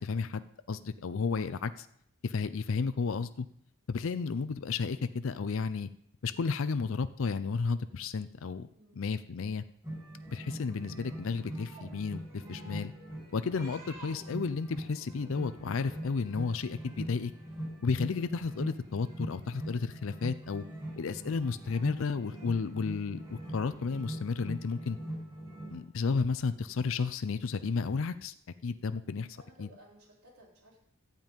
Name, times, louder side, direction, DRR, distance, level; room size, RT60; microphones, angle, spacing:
voice 1, 0.0-1.9 2.2-3.5 3.9-5.9 6.2-8.7 8.9-9.6 10.3-12.9 13.3-17.3 17.8-20.6 21.0-25.0 25.7-28.3 28.6-29.3 29.6-29.7, left 4 dB, 60° left, 12 dB, 0.5 m, -32 dB
voice 2, 8.7-9.1 29.3-30.8, equal, 85° right, -2 dB, 4.0 m, -58 dB
sound 1, 9.8-25.8, right 1 dB, 20° right, 4.1 m, -42 dB
12.0 x 5.4 x 9.0 m, 0.71 s
head